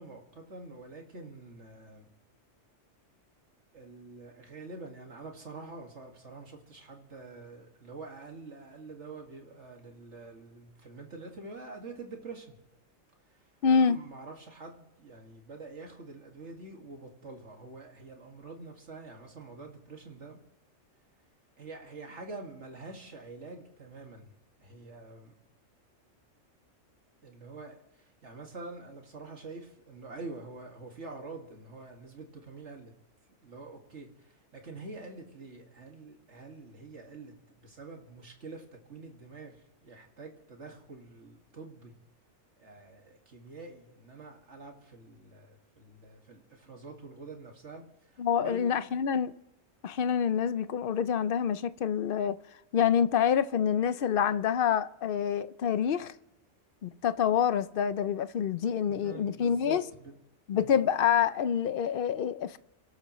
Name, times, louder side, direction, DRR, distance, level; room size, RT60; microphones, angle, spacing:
voice 1, 0.0-2.1 3.7-12.6 13.3-20.4 21.6-24.3 24.6-25.4 27.2-32.9 33.4-41.9 42.6-48.8 58.8-60.1 60.5-60.8, right 3 dB, 65° right, 2.3 m, -46 dB
voice 2, 13.6-14.0 48.2-49.3 49.8-52.4 52.7-56.1 56.8-59.8 60.5-62.6, left 8 dB, 55° left, 0.7 m, -27 dB
29.5 x 12.5 x 3.1 m
omnidirectional pair, 1.3 m